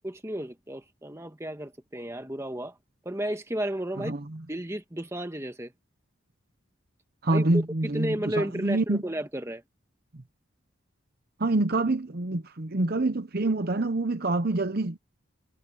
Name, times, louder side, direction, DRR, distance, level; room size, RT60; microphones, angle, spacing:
voice 1, 0.0-2.8 3.0-4.1 4.5-5.7 7.3-7.4 7.9-9.6, right 1 dB, 15° right, 1.5 m, -33 dB
voice 2, 4.0-4.4 7.2-9.0 10.1-10.2 11.4-15.0, right 2 dB, 45° right, 0.9 m, -26 dB
head